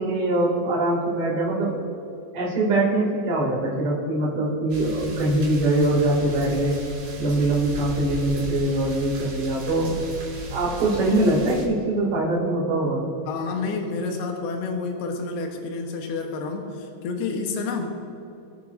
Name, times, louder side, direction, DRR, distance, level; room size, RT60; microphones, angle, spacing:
voice 1, 0.0-1.8 2.3-6.8 7.2-9.9 10.5-13.0, right 2 dB, 35° right, -4 dB, 3.0 m, -23 dB
sound 1, 4.7-11.6, right 2 dB, 50° right, 4.7 m, -36 dB
voice 2, 13.3-17.8, left 4 dB, 70° left, 2 dB, 3.0 m, -29 dB
22.0 x 9.4 x 2.7 m, 2.8 s
omnidirectional pair, 5.2 m